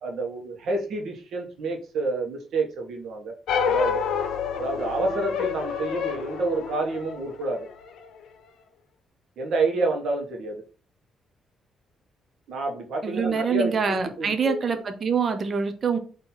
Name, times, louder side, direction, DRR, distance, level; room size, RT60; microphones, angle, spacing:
voice 1, 0.0-3.3 3.6-4.0 4.6-7.7 9.4-10.6 12.5-14.8, right 2 dB, 70° right, 1.3 m, -28 dB
sound 1, 3.5-8.1, left 6 dB, 75° left, 0.7 m, -28 dB
voice 2, 13.0-16.0, right 6 dB, 45° right, 0.8 m, -25 dB
4.4 x 3.0 x 3.9 m
cardioid pair, 90°, 0 cm